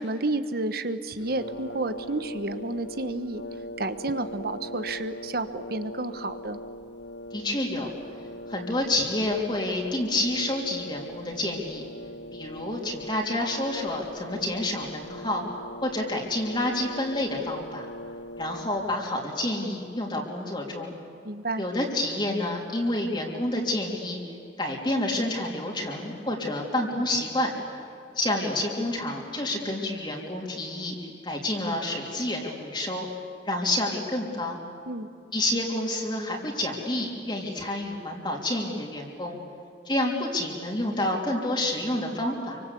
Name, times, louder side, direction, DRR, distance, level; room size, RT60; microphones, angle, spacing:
voice 1, 0.0-3.4 3.8-6.6 21.2-21.6 34.9-35.1, right 2 dB, 55° right, 11 dB, 1.2 m, -31 dB
Brass instrument, 1.2-19.0, left 1 dB, 80° left, 1.6 m, -41 dB
voice 2, 7.3-7.9 8.5-11.8 12.3-15.4 15.8-17.9 18.4-20.9 21.6-24.2 24.6-27.5 28.2-31.0 31.2-33.1 33.5-34.6 35.3-39.4 39.9-42.6, left 1 dB, 25° left, -1 dB, 3.5 m, -29 dB
28.0 x 25.0 x 8.4 m, 2.5 s
head